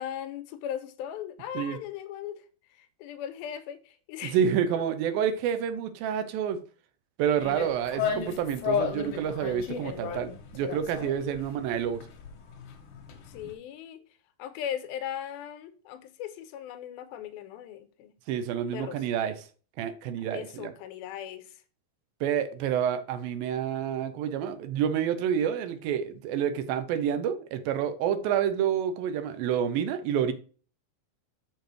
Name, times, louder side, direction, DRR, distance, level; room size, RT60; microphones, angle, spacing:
voice 1, 0.0-2.4 2.8-4.4 13.3-14.0 14.4-18.2 18.6-19.0 20.3-21.5, left 10 dB, 85° left, 2.5 m, -38 dB
voice 2, 4.2-6.6 7.2-12.0 18.3-19.4 19.8-20.7 22.2-30.3, right 8 dB, 80° right, 2.4 m, -28 dB
sound 1, 7.4-13.5, left 7 dB, 65° left, 2.3 m, -34 dB
6.7 x 6.6 x 3.1 m
omnidirectional pair, 4.2 m